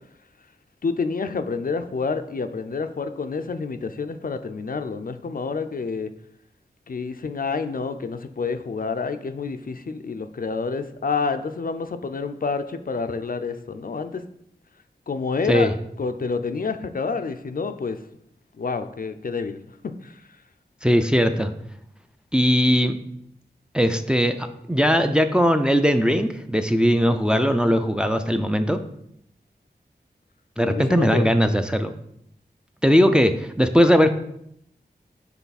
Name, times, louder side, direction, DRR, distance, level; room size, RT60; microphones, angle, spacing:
voice 1, 0.8-6.1 6.9-14.2 15.1-15.7 16.0-18.0 18.6-19.6 19.8-20.2 30.7-31.3, left 4 dB, 55° left, 8 dB, 0.5 m, -28 dB
voice 2, 20.8-21.5 22.3-22.9 23.7-28.8 30.6-31.9 32.8-34.1, equal, 5° right, 6 dB, 0.5 m, -19 dB
5.8 x 4.1 x 4.1 m, 0.73 s
wide cardioid pair, 55°, 17 cm